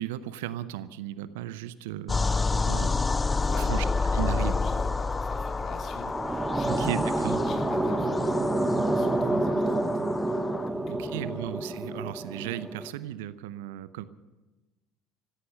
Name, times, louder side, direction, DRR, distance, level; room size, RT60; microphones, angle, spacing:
voice 1, 0.0-3.0 3.6-3.8 4.1-4.5 6.6-7.4 10.9-14.0, right 13 dB, 70° right, 16 dB, 0.6 m, -35 dB
sound 1, 2.1-10.7, left 4 dB, 20° left, 0.6 m, -29 dB
voice 2, 3.3-6.8 7.4-10.0 10.6-11.5, left 4 dB, 45° left, 3 dB, 2.9 m, -42 dB
sound 2, 5.7-12.9, right 2 dB, 15° right, 1.1 m, -28 dB
sound 3, 8.0-12.9, equal, 85° right, 3.3 m, -55 dB
15.5 x 14.0 x 6.6 m, 1.2 s
figure-of-eight pair, 65°, 0 cm